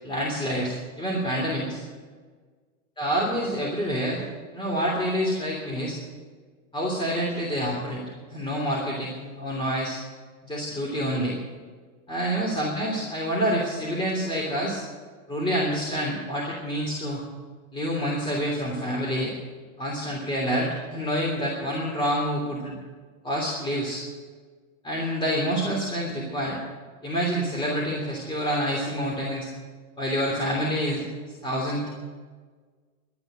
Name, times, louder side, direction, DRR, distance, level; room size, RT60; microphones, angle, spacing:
voice 1, 0.0-1.8 3.0-4.2 4.5-6.0 6.7-8.0 8.3-10.0 10.4-11.4 12.1-14.8 15.3-17.2 17.7-19.3 19.8-22.7 23.2-24.0 24.8-26.6 27.0-29.5 30.0-31.0 31.4-31.9, equal, 10° left, -3 dB, 3.1 m, -27 dB
12.5 x 9.6 x 9.1 m, 1.5 s
hypercardioid pair, 120°, 43 cm